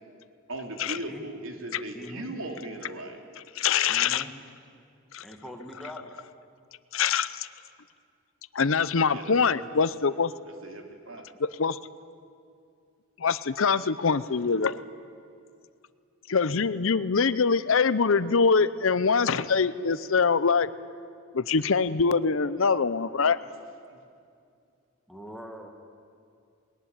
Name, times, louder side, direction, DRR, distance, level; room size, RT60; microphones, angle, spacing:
voice 1, 0.5-3.2 9.1-9.3 10.6-11.3 23.9-24.0, right 1 dB, 75° right, 3 dB, 3.0 m, -38 dB
voice 2, 1.9-2.3 3.9-4.3 5.2-6.2 9.3-9.7 25.1-25.7, equal, ahead, 3 dB, 1.8 m, -43 dB
voice 3, 3.6-4.2 5.1-5.2 6.9-7.5 8.5-10.3 11.4-11.8 13.2-14.8 16.3-20.7 21.3-23.4, left 5 dB, 70° left, 16 dB, 0.7 m, -24 dB
20.5 x 19.5 x 10.0 m, 2.4 s
head